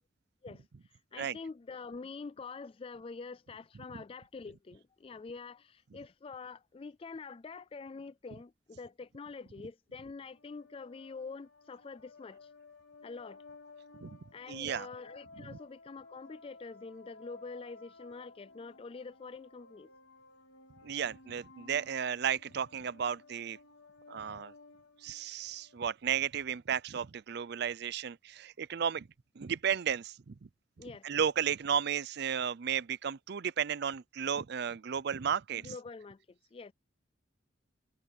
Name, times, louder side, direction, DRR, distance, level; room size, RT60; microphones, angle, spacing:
voice 1, 0.4-12.5 13.0-13.4 14.3-19.9 30.8-31.1 35.5-36.7, left 4 dB, 30° left, 0.3 m, -46 dB
sound 1, 10.3-25.8, left 3 dB, 90° left, 3.3 m, -56 dB
voice 2, 14.5-14.9 20.8-23.6 24.1-24.5 25.0-29.1 29.4-30.3 31.0-35.7, right 8 dB, 60° right, 0.5 m, -33 dB
head